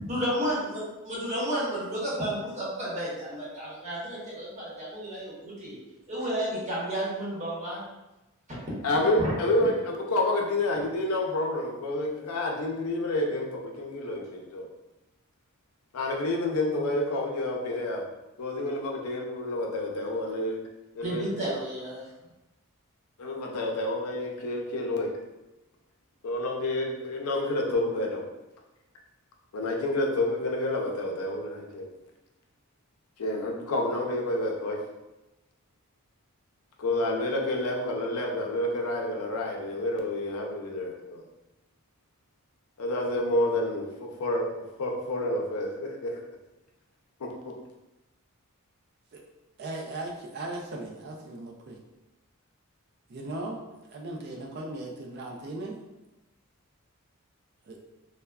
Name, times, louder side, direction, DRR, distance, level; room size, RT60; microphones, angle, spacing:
voice 1, 0.0-5.7 6.1-7.8 9.2-9.3 21.0-22.0, equal, 30° right, -7 dB, 0.9 m, -32 dB
voice 2, 8.8-14.7 15.9-18.1 18.4-20.6 20.9-21.3 23.2-25.1 26.2-28.2 29.5-31.9 33.2-34.8 36.8-41.2 42.8-46.2 47.2-47.3, left 1 dB, 85° left, 0 dB, 0.5 m, -29 dB
voice 3, 49.6-51.8 53.1-55.8 57.6-57.8, right 2 dB, 45° right, 0 dB, 0.3 m, -38 dB
3.3 x 2.1 x 2.2 m, 0.99 s
head